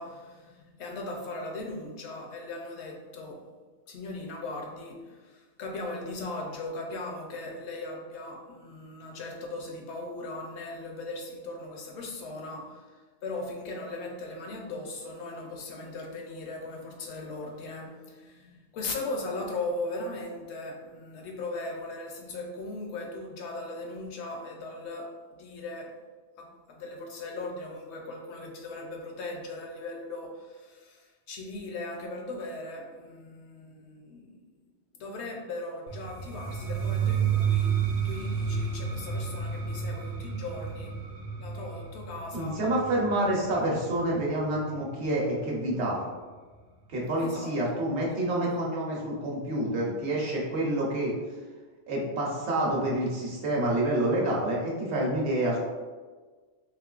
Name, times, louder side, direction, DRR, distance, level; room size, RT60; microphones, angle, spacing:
voice 1, 0.0-3.6 3.9-26.0 26.4-34.6 34.9-37.8 38.0-41.0 41.4-42.6 47.2-48.2 48.5-48.6, left 2 dB, 75° left, 1 dB, 0.9 m, -38 dB
sound 1, 35.9-45.7, right 7 dB, 55° right, 0.7 m, -31 dB
voice 2, 42.3-46.0 46.9-51.1 51.9-55.6, right 1 dB, 70° right, -3 dB, 1.1 m, -28 dB
3.5 x 3.0 x 2.4 m, 1.4 s
omnidirectional pair, 1.2 m